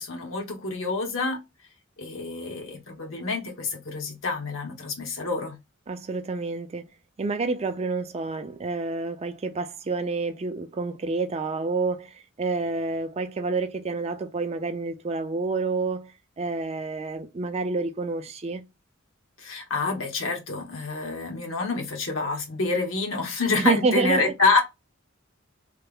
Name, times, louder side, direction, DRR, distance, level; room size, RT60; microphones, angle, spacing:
voice 1, 0.0-1.4 2.0-5.6 19.4-24.6, left 3 dB, 75° left, 1.1 m, -27 dB
voice 2, 5.9-6.9 7.2-18.6 23.5-24.3, right 3 dB, 30° right, 0.4 m, -28 dB
3.2 x 2.0 x 3.4 m
head